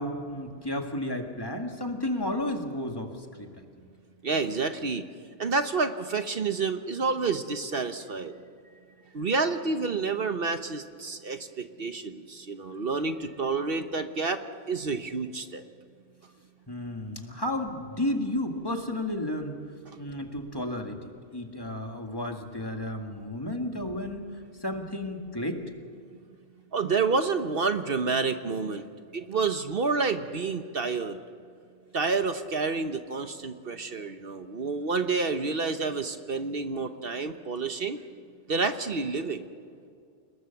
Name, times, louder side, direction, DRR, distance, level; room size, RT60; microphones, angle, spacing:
voice 1, 0.0-3.7 16.7-19.6 20.0-21.0 21.3-24.3 24.6-25.6, left 1 dB, 20° left, 3 dB, 2.0 m, -32 dB
voice 2, 4.2-5.0 5.4-8.3 9.1-14.4 14.7-15.6 26.7-28.8 29.1-31.2 31.9-38.0 38.5-39.5, right 4 dB, 60° right, 8 dB, 1.2 m, -29 dB
29.5 x 19.5 x 7.1 m, 2.2 s
omnidirectional pair, 1.1 m